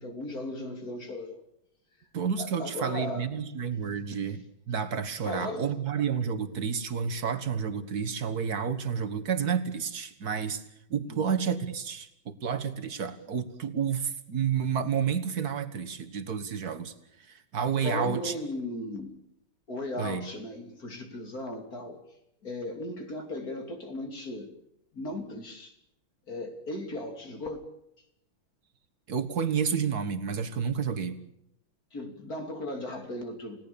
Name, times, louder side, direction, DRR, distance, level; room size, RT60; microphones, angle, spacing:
voice 1, 0.0-1.4 2.4-3.3 5.2-5.7 11.1-11.3 17.8-19.2 19.7-22.0 22.4-24.5 24.9-25.8 26.3-27.7 31.9-33.6, left 1 dB, 45° left, 4 dB, 3.4 m, -36 dB
voice 2, 2.1-4.4 4.7-10.6 10.9-18.3 20.0-20.3 29.1-31.2, right 7 dB, 50° right, 9 dB, 1.9 m, -30 dB
29.5 x 17.5 x 7.0 m, 0.80 s
omnidirectional pair, 2.2 m